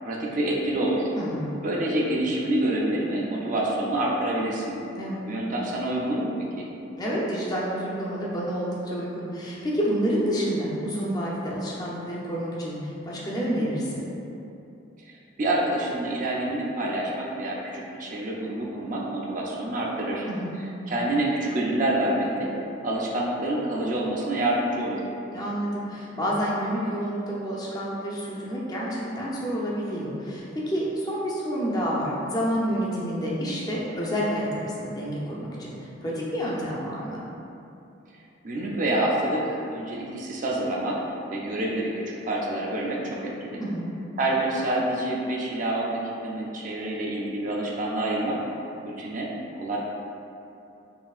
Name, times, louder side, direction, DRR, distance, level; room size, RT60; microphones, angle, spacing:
voice 1, 0.0-1.1 1.6-4.8 5.3-6.7 15.1-20.3 20.9-22.5 22.8-25.0 38.4-41.0 41.3-41.9 42.2-43.6 44.2-48.4 48.8-49.3 49.5-49.8, right 1 dB, 40° right, -3 dB, 0.5 m, -27 dB
voice 2, 1.1-1.5 4.9-5.2 7.0-14.0 20.3-20.6 25.3-37.2 43.6-43.9, equal, 20° left, -6 dB, 0.6 m, -29 dB
5.5 x 2.8 x 2.4 m, 2.8 s
head